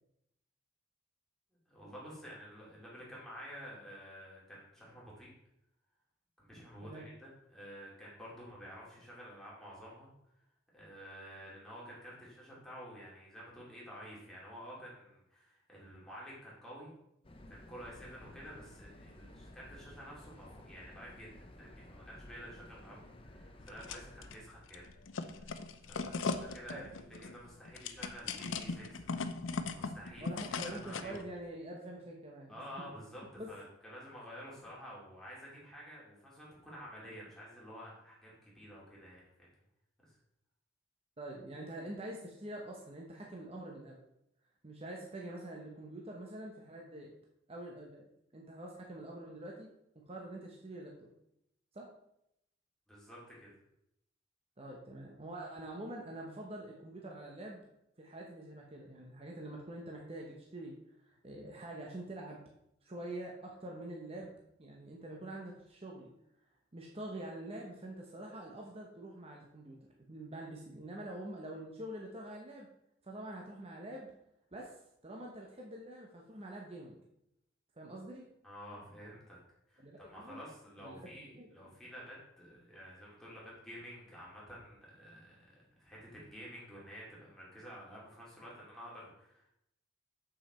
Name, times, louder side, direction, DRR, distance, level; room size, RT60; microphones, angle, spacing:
voice 1, 1.7-5.3 6.4-10.1 10.7-16.9 17.5-24.8 25.2-25.5 25.8-29.1 29.7-30.3 30.6-31.2 32.5-39.5 40.0-40.1 52.9-53.5 78.4-79.4 79.7-85.5 85.8-89.5, equal, ahead, -7 dB, 2.6 m, -50 dB
sound 1, 17.2-24.4, left 1 dB, 25° left, 0.7 m, -54 dB
sound 2, 23.6-24.4 24.7-31.2, left 4 dB, 70° left, 0.6 m, -39 dB
voice 2, 30.2-32.6 33.4-33.5 41.2-44.0 44.6-47.1 47.5-49.7 49.9-50.9 51.7-51.9 54.6-57.6 58.0-60.8 61.0-62.4 62.8-64.3 64.6-66.1 66.7-72.7 73.0-74.1 74.5-74.8 75.0-77.0 77.8-78.2 79.8-80.4 80.8-81.7, right 1 dB, 30° right, -1 dB, 0.9 m, -46 dB
7.4 x 6.0 x 4.3 m, 0.81 s
head